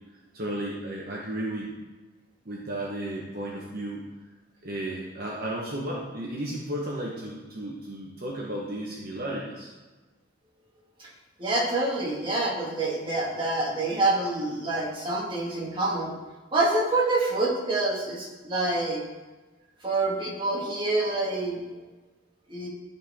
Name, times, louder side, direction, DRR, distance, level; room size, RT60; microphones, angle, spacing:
voice 1, 0.3-1.8 2.4-4.0 4.6-9.7, right 1 dB, 55° right, -3 dB, 1.1 m, -34 dB
voice 2, 11.4-16.1 16.5-19.0 19.8-21.6 22.5-22.7, right 2 dB, 25° right, -4 dB, 1.8 m, -26 dB
13.0 x 4.3 x 3.6 m, 1.2 s
head